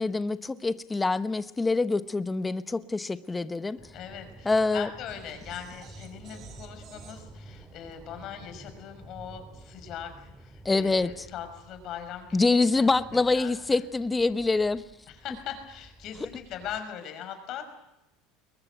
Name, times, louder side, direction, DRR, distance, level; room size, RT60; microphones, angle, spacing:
voice 1, 0.0-3.8 4.4-4.9 10.6-11.3 12.3-14.8, left 3 dB, 15° left, 13 dB, 1.0 m, -25 dB
sound 1, 3.8-16.8, right 1 dB, 5° right, 2.4 m, -51 dB
voice 2, 3.9-13.8 15.1-17.6, left 9 dB, 50° left, 7 dB, 5.8 m, -41 dB
sound 2, 5.1-9.2, right 8 dB, 45° right, 3.6 m, -52 dB
22.5 x 20.0 x 9.3 m, 0.88 s
supercardioid pair, 115°, 0 cm